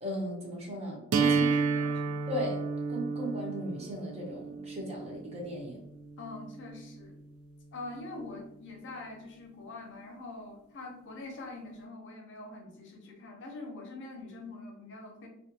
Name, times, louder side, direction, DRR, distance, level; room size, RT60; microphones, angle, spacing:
voice 1, 0.0-1.4 2.3-2.6 2.9-5.9, equal, 30° right, -2 dB, 0.7 m, -37 dB
voice 2, 1.1-2.3 6.2-7.2 7.7-15.3, left 2 dB, 60° left, 2 dB, 0.6 m, -44 dB
sound 1, 1.1-7.1, right 4 dB, 75° right, 0.3 m, -32 dB
2.4 x 2.3 x 2.7 m, 0.77 s
head